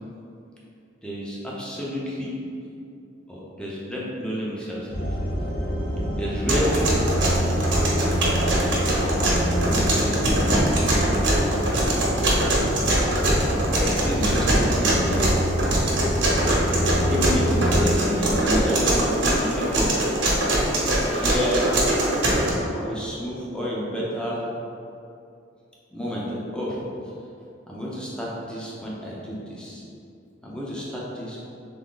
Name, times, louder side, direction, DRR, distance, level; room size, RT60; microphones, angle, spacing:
voice 1, 1.0-2.4 3.3-5.1 6.2-7.3 9.0-10.4 11.3-12.0 13.4-15.3 17.1-19.9 21.0-21.7 22.7-24.5 25.9-26.8 27.7-29.8 30.4-31.4, equal, 5° left, -6 dB, 0.8 m, -30 dB
sound 1, 4.9-18.0, equal, 55° left, 1.0 m, -26 dB
sound 2, 6.5-22.5, right 1 dB, 75° right, 1.1 m, -22 dB
3.7 x 3.6 x 3.8 m, 2.6 s
head